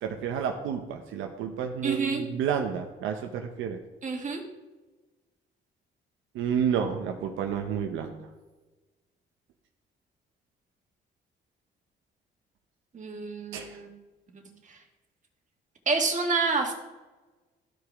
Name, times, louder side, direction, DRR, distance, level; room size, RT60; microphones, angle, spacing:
voice 1, 0.0-3.8 6.3-8.3 13.5-13.8, right 7 dB, 90° right, 4 dB, 0.7 m, -30 dB
voice 2, 1.8-2.2 4.0-4.4 12.9-13.9 14.3-14.4 14.7-14.8 15.8-16.7, right 4 dB, 40° right, 2 dB, 1.7 m, -28 dB
13.0 x 4.9 x 3.5 m, 1.2 s
cardioid pair, 90°, 20 cm